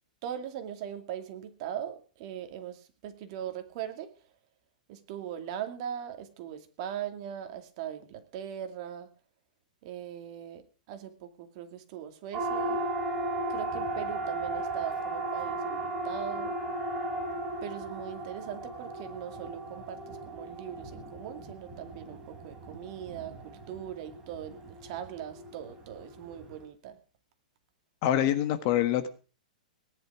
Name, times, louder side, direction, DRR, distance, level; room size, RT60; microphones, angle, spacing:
voice 1, 0.2-4.1 4.9-9.1 9.8-12.8 13.5-16.6 17.6-27.0, right 10 dB, 40° right, 7 dB, 2.4 m, -40 dB
Siren, 12.3-26.6, right 2 dB, 15° right, 4.0 m, -36 dB
voice 2, 28.0-29.1, left 11 dB, 35° left, 11 dB, 1.5 m, -25 dB
19.0 x 10.5 x 4.9 m, 0.36 s
hypercardioid pair, 160°, 5 cm